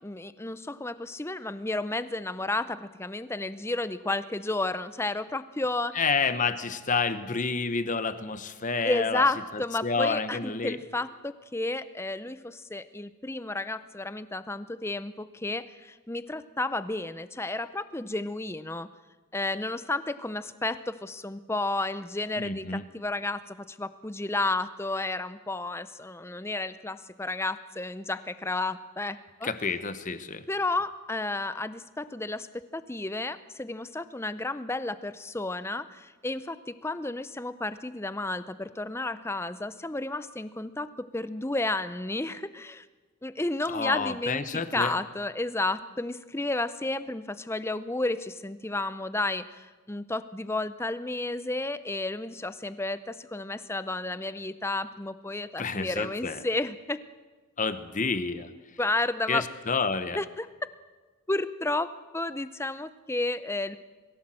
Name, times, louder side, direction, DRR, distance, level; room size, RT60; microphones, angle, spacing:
voice 1, 0.0-6.0 8.8-18.9 19.3-29.5 30.5-42.9 43.2-57.0 58.8-59.4 60.1-60.5 61.3-61.9 62.1-63.8, left 2 dB, 10° left, 13 dB, 0.6 m, -32 dB
voice 2, 5.9-9.2 9.8-10.8 22.4-22.8 29.4-30.4 43.7-44.9 55.6-56.4 57.6-58.5 59.3-60.2, left 4 dB, 35° left, 11 dB, 1.0 m, -29 dB
22.0 x 16.0 x 7.6 m, 1.3 s
head